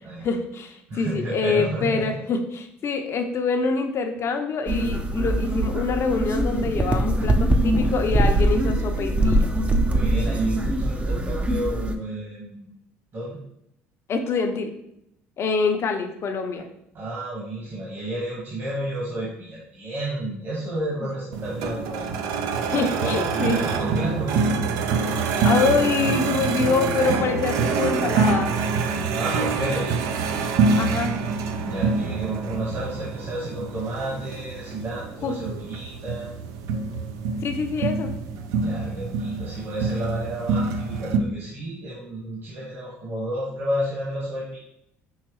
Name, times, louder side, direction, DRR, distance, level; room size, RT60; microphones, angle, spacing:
voice 1, 0.2-9.5 14.1-14.7 15.4-16.7 21.0-21.1 22.7-23.6 25.4-28.6 30.8-31.1 35.2-35.3 37.4-38.1, left 4 dB, 50° left, 5 dB, 0.7 m, -25 dB
voice 2, 0.9-2.1 9.8-12.7 13.1-13.4 16.9-22.1 22.7-24.5 29.1-29.9 31.6-36.3 38.6-44.6, right 1 dB, 45° right, -5 dB, 1.5 m, -31 dB
sound 1, 4.7-12.0, right 1 dB, 20° right, 0.6 m, -22 dB
sound 2, 21.3-41.2, right 4 dB, 70° right, 0.5 m, -26 dB
5.6 x 3.0 x 3.1 m, 0.77 s
supercardioid pair, 75°, 6 cm